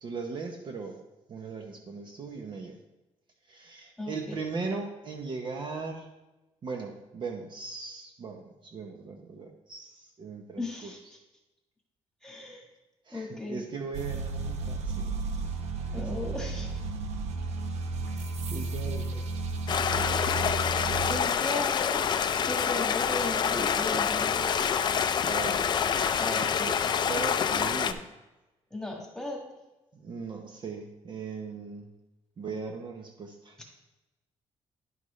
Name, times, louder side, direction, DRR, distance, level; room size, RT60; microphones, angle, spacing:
voice 1, 0.0-1.0 1.3-2.8 3.5-6.1 6.6-10.9 13.1-15.1 15.9-16.1 18.5-19.3 25.3-26.2 26.6-28.0 29.9-31.9 32.4-33.6, right 4 dB, 45° right, 3 dB, 0.8 m, -38 dB
voice 2, 4.0-4.4 10.6-11.2 12.2-12.6 13.1-13.6 15.8-16.7 18.1-18.3 19.1-19.2 21.1-22.1 22.4-24.8 26.2-26.7 28.7-29.4, left 2 dB, 5° left, -1 dB, 1.7 m, -36 dB
sound 1, 13.9-21.2, right 3 dB, 75° right, 0.7 m, -33 dB
Stream, 19.7-27.9, left 7 dB, 40° left, 0.4 m, -27 dB
10.5 x 5.9 x 3.2 m, 1.0 s
cardioid pair, 140°, 11 cm